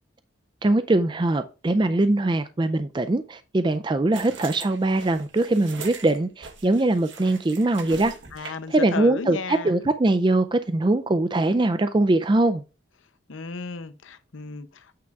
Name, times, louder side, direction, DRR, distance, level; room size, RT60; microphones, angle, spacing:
voice 1, 0.6-12.6, right 2 dB, 25° right, 0.4 m, -22 dB
sound 1, 4.1-8.8, right 4 dB, 75° right, 1.2 m, -41 dB
voice 2, 8.3-9.7 13.3-14.9, left 4 dB, 90° left, 0.7 m, -34 dB
8.6 x 3.6 x 4.6 m
head